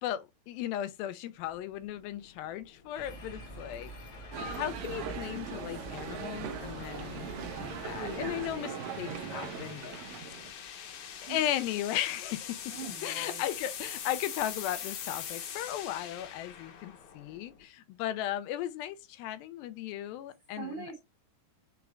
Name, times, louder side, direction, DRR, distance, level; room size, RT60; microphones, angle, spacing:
voice 1, 0.0-3.9 4.6-10.0 10.5-12.6 13.0-20.9, left 12 dB, 85° left, 2.4 m, -36 dB
sound 1, 1.4-17.6, left 8 dB, 70° left, 2.2 m, -45 dB
sound 2, 2.9-8.5, equal, 45° left, 1.3 m, -46 dB
sound 3, 4.3-10.5, right 6 dB, 75° right, 1.7 m, -40 dB
voice 2, 8.0-8.5 11.3-11.4 12.7-13.4 20.5-21.0, right 5 dB, 50° right, 1.6 m, -41 dB
5.9 x 2.4 x 3.2 m
omnidirectional pair, 4.1 m